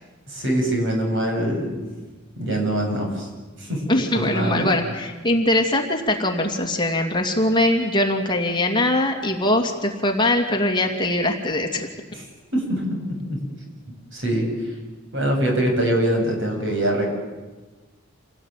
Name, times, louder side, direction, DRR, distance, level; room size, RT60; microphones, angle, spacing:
voice 1, 0.3-1.9 2.4-3.3 3.6-3.8 4.1-4.7 12.1-12.2 12.5-13.4 14.1-14.5 15.1-17.1, right 1 dB, 65° right, 2 dB, 7.9 m, -23 dB
voice 2, 3.9-11.9, left 1 dB, 25° left, 3 dB, 2.6 m, -22 dB
28.0 x 19.0 x 9.3 m, 1.2 s
head